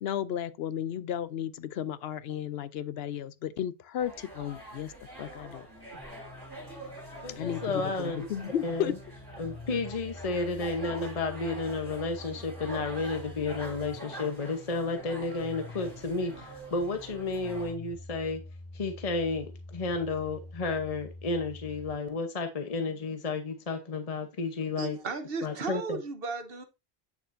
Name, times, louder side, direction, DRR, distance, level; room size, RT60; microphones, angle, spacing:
voice 1, 0.0-4.9 5.2-5.7 7.3-8.9, left 10 dB, 75° left, 0.8 m, -34 dB
sound 1, 4.0-17.7, right 1 dB, 20° right, 3.8 m, -45 dB
sound 2, 5.9-21.9, left 2 dB, 55° left, 5.5 m, -47 dB
voice 2, 7.2-8.2 8.6-9.0 9.4-18.4 18.7-25.0 25.4-26.0, left 3 dB, 40° left, 0.9 m, -32 dB
voice 3, 24.8-26.6, right 4 dB, 70° right, 1.2 m, -35 dB
8.4 x 6.7 x 2.6 m
omnidirectional pair, 1.0 m